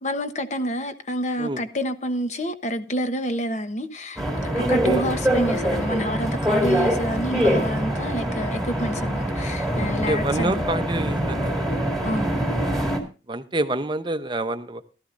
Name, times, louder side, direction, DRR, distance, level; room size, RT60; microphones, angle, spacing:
voice 1, 0.0-10.6 12.0-12.3, equal, 40° left, 1.0 m, -28 dB
sound 1, 4.2-13.0, equal, ahead, 2.1 m, -24 dB
voice 2, 4.6-5.0 10.1-11.8 13.3-14.8, right 2 dB, 25° right, 0.7 m, -27 dB
16.0 x 13.0 x 2.6 m
head